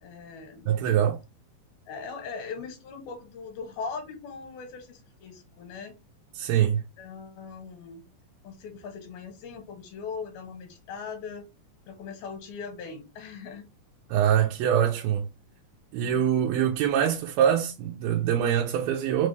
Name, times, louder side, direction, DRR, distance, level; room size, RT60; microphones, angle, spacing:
voice 1, 0.0-0.8 1.9-6.0 7.0-8.0 8.4-11.4 11.9-13.7 16.0-16.3, left 5 dB, 85° left, 2.7 m, -40 dB
voice 2, 0.7-1.2 6.4-6.8 14.1-15.3 15.9-19.3, right 9 dB, 90° right, 2.4 m, -24 dB
5.8 x 2.1 x 3.2 m
omnidirectional pair, 4.1 m